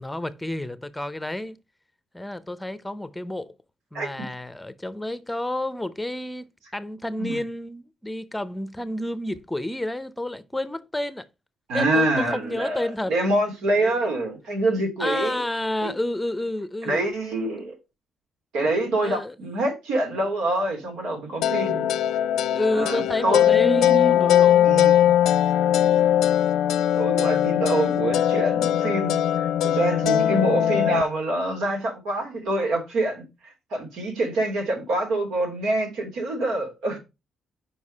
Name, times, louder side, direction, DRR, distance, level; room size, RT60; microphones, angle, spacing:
voice 1, 0.0-1.6 2.1-3.5 3.9-11.3 11.7-13.1 13.8-14.0 15.0-17.1 19.0-19.3 22.5-24.7, left 1 dB, 10° left, 0.7 m, -30 dB
voice 2, 11.7-15.4 15.8-15.9 16.8-17.8 18.5-21.9 22.7-24.2 24.6-25.1 27.0-37.0, right 1 dB, 85° right, 2.9 m, -26 dB
sound 1, 21.4-31.0, left 10 dB, 85° left, 0.4 m, -20 dB
5.2 x 4.7 x 5.4 m
cardioid pair, 90°, 0 cm